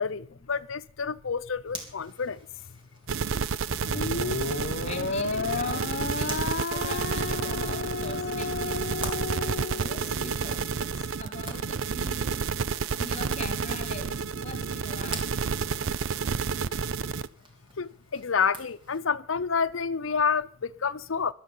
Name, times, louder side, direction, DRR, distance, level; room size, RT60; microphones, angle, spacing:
voice 1, 0.0-2.4 17.8-21.3, left 6 dB, 85° left, 0.7 m, -29 dB
Zipper (clothing), 1.7-19.0, right 1 dB, 25° right, 3.3 m, -47 dB
sound 1, 3.1-17.3, right 5 dB, 80° right, 0.6 m, -30 dB
sound 2, 3.8-10.4, left 4 dB, 55° left, 1.0 m, -32 dB
voice 2, 4.8-8.9 9.6-12.5 13.0-15.3, left 2 dB, 35° left, 2.4 m, -43 dB
14.0 x 12.5 x 5.7 m
head